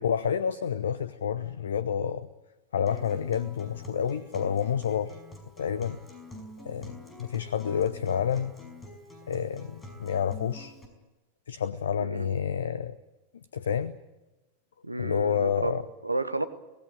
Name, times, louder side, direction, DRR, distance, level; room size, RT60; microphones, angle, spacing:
voice 1, 0.0-2.3 2.7-5.2 5.6-6.0 6.6-8.5 9.3-10.7 11.5-13.0 13.5-13.9 15.0-15.8, left 8 dB, 65° left, 17 dB, 0.9 m, -29 dB
Acoustic guitar, 2.9-10.8, left 1 dB, 10° left, 5.5 m, -47 dB
voice 2, 12.0-12.4 14.8-16.4, right 2 dB, 85° right, 11 dB, 1.3 m, -32 dB
24.5 x 19.0 x 9.0 m, 1.1 s
figure-of-eight pair, 90°, 0 cm